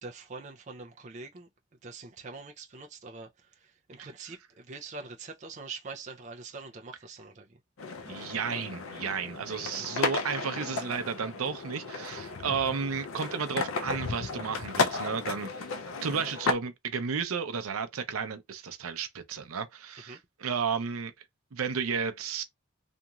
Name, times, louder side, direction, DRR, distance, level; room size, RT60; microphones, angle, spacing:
voice 1, 0.0-1.5 1.8-7.6 20.1-20.2, right 4 dB, 35° right, 0.4 m, -44 dB
sound 1, 7.8-16.5, left 4 dB, 75° left, 0.5 m, -34 dB
voice 2, 8.1-15.7 16.0-21.1 21.5-22.4, right 6 dB, 85° right, 0.6 m, -33 dB
2.9 x 2.5 x 2.3 m
head